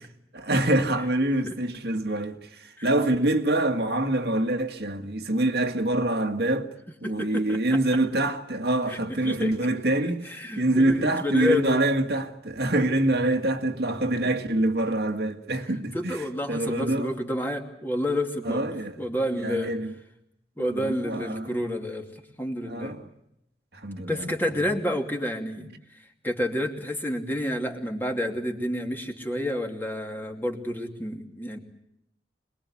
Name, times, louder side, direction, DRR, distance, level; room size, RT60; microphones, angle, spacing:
voice 1, 0.3-6.7 7.0-17.1 18.4-19.0 19.3-19.9 20.6-21.6 22.7-23.1 23.7-24.3, right 1 dB, 60° right, 1.9 m, -25 dB
voice 2, 7.0-7.8 8.9-9.0 9.2-9.5 10.2-11.8 15.9-18.6 19.0-19.7 20.6-22.1 22.4-23.0 24.1-25.7 26.2-31.6, left 1 dB, 10° left, 2.7 m, -29 dB
26.5 x 21.0 x 8.5 m
head